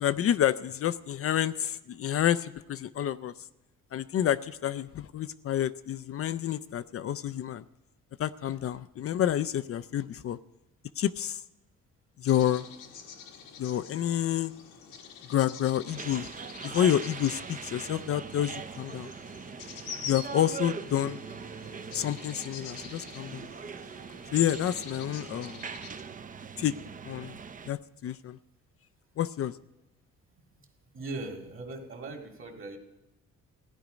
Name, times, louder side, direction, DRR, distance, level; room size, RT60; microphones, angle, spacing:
voice 1, 0.0-3.3 3.9-7.6 8.2-10.4 11.0-11.4 12.2-12.7 13.6-14.5 15.3-16.3 16.6-19.1 20.0-21.2 21.9-23.5 24.3-25.6 26.6-26.7 27.1-27.4 27.7-28.4 29.2-29.6, left 11 dB, 50° left, 14 dB, 0.4 m, -29 dB
sound 1, 12.2-26.0, left 7 dB, 90° left, 1.4 m, -45 dB
sound 2, 15.9-27.7, right 6 dB, 25° right, 0.5 m, -41 dB
voice 2, 30.9-32.8, right 2 dB, 40° right, 3 dB, 2.3 m, -39 dB
15.5 x 10.5 x 5.1 m, 0.93 s
cardioid pair, 90°, 30 cm